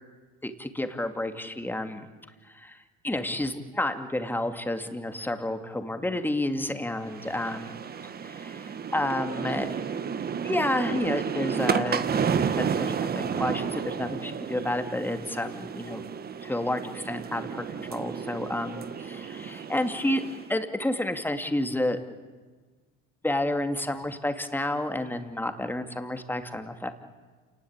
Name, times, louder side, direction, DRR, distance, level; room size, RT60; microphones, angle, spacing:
voice 1, 0.4-2.1 2.5-7.8 8.4-9.7 10.4-12.0 12.6-16.0 16.4-17.6 17.9-20.2 20.5-22.0 23.2-26.9, left 1 dB, 5° left, 7 dB, 2.5 m, -30 dB
sound 1, 7.0-20.5, right 7 dB, 30° right, 1.6 m, -32 dB
28.5 x 19.5 x 8.9 m, 1.4 s
supercardioid pair, 95°, 30 cm